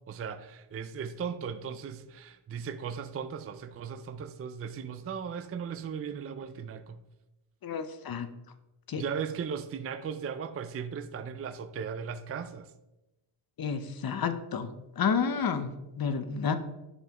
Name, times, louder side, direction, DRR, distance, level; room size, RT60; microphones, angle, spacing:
voice 1, 0.1-7.0 9.0-12.7, right 7 dB, 30° right, 0.4 m, -37 dB
voice 2, 7.6-8.3 8.9-9.0 13.6-14.7 15.0-16.6, left 6 dB, 45° left, 0.8 m, -30 dB
11.0 x 5.4 x 3.0 m
cardioid pair, 95°, 49 cm